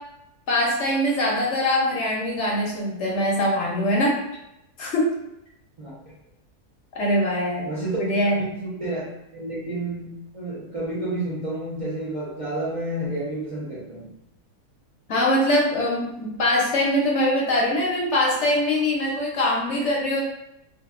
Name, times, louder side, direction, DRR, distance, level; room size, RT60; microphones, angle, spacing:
voice 1, 0.5-4.2 4.8-5.1 6.9-7.7 8.0-8.4 15.1-20.2, left 1 dB, 65° left, -2 dB, 0.7 m, -22 dB
voice 2, 7.6-8.0 8.3-9.0 9.3-14.1, right 1 dB, 55° right, -9 dB, 0.3 m, -30 dB
2.6 x 2.5 x 2.3 m, 0.85 s
omnidirectional pair, 1.6 m